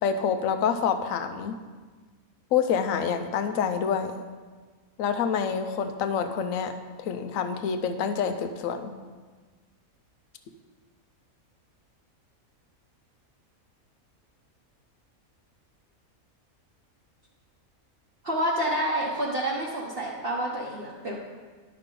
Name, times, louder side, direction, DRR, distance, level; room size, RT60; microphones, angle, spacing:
voice 1, 0.0-1.6 2.5-4.1 5.0-6.7 7.0-9.0, left 7 dB, 70° left, 7 dB, 1.0 m, -27 dB
voice 2, 18.2-21.1, right 1 dB, 45° right, -4 dB, 1.1 m, -28 dB
10.5 x 5.8 x 3.8 m, 1.4 s
omnidirectional pair, 1.5 m